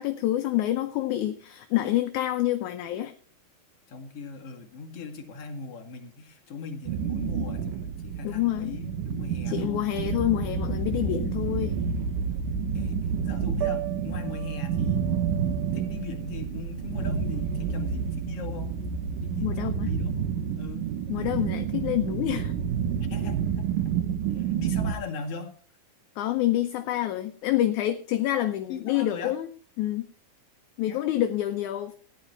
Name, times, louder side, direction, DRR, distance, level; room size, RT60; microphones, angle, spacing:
voice 1, 0.0-3.1 8.2-8.8 9.5-11.9 19.4-19.9 21.1-22.5 26.2-29.5 29.8-30.1 30.8-31.9, left 13 dB, 75° left, 8 dB, 2.1 m, -27 dB
voice 2, 3.9-9.9 12.3-15.1 15.7-18.8 19.2-20.2 20.5-20.9 23.0-23.7 24.4-25.5 28.7-29.4 30.9-31.0, left 5 dB, 50° left, 2 dB, 2.8 m, -39 dB
sound 1, 6.9-24.9, right 7 dB, 85° right, 3.0 m, -29 dB
Piano, 13.5-19.5, right 16 dB, 65° right, 1.9 m, -39 dB
15.0 x 10.5 x 4.5 m, 0.42 s
omnidirectional pair, 3.7 m